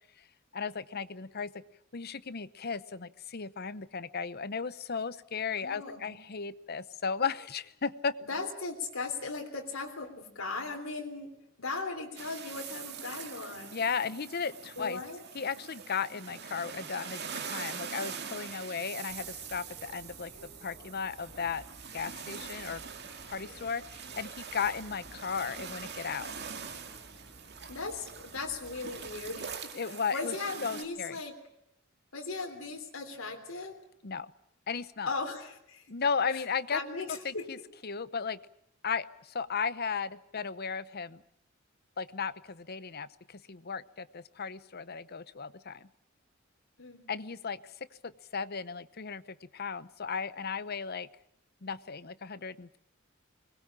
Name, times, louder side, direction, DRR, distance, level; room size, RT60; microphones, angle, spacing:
voice 1, 0.5-1.6 1.9-8.1 13.7-15.0 15.3-20.3 20.6-21.6 21.9-22.8 23.3-26.3 29.7-30.3 30.6-31.2 34.0-34.3 34.7-35.2 35.9-36.8 37.2-37.6 37.8-38.4 38.8-41.2 42.0-45.9 47.1-47.7 48.0-51.1 51.6-52.8, left 5 dB, 50° left, 16 dB, 0.8 m, -35 dB
voice 2, 5.6-6.2 8.3-13.7 14.8-15.2 27.7-31.3 32.1-33.8 35.1-35.8 36.3-36.4 36.7-37.5 46.8-47.1, left 3 dB, 85° left, 2 dB, 3.5 m, -38 dB
sound 1, 12.2-30.8, right 6 dB, 55° right, 2.3 m, -44 dB
sound 2, 19.1-29.6, equal, 10° left, 6.1 m, -55 dB
21.5 x 20.5 x 8.7 m, 0.75 s
head